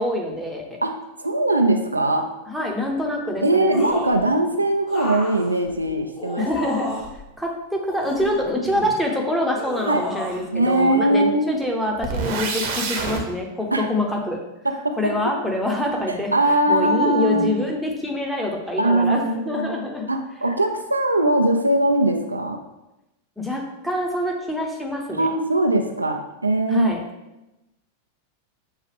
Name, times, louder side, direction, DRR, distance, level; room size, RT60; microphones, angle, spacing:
voice 1, 0.0-0.8 2.5-3.8 6.4-6.9 7.4-14.4 15.0-16.3 16.7-20.1 23.4-25.3 26.7-27.0, left 1 dB, ahead, 0 dB, 0.8 m, -25 dB
voice 2, 0.8-2.3 3.4-6.5 9.9-10.0 10.5-11.5 13.7-13.9 14.6-15.2 16.1-17.6 18.8-19.8 20.1-22.6 25.1-26.9, right 1 dB, 85° right, 5 dB, 0.3 m, -21 dB
sound 1, 3.7-4.2 4.9-7.2 7.9-9.0 9.5-10.4 10.7-10.8, left 1 dB, 40° left, 1.2 m, -31 dB
sound 2, 12.0-13.2, right 4 dB, 50° right, 0.8 m, -26 dB
6.2 x 2.4 x 3.3 m, 0.96 s
figure-of-eight pair, 90°, 0 cm